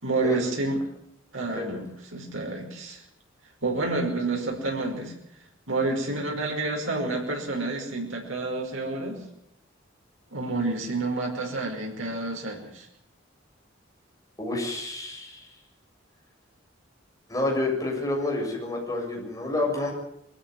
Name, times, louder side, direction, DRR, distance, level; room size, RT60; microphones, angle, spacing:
voice 1, 0.0-0.8 1.3-3.0 3.6-5.1 5.7-9.2 10.3-12.9, right 2 dB, 85° right, 0 dB, 5.5 m, -29 dB
voice 2, 14.4-15.5 17.3-19.9, left 2 dB, 15° left, -1 dB, 7.2 m, -29 dB
23.0 x 14.0 x 9.6 m, 0.75 s
head